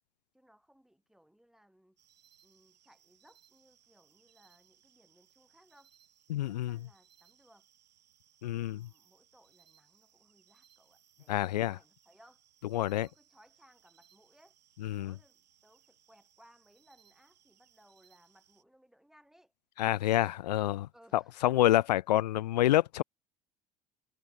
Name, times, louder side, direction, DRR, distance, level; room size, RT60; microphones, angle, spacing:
voice 1, 0.3-2.0 2.4-5.9 6.5-7.7 8.4-12.4 12.8-14.6 15.0-19.5 20.9-21.6, equal, ahead, 6.1 m, -64 dB
sound 1, 2.0-18.6, right 10 dB, 75° right, 6.4 m, -67 dB
voice 2, 6.3-6.8 8.4-8.9 11.3-11.8 12.7-13.1 14.8-15.1 19.8-23.0, left 14 dB, 75° left, 0.4 m, -28 dB
figure-of-eight pair, 65°, 21 cm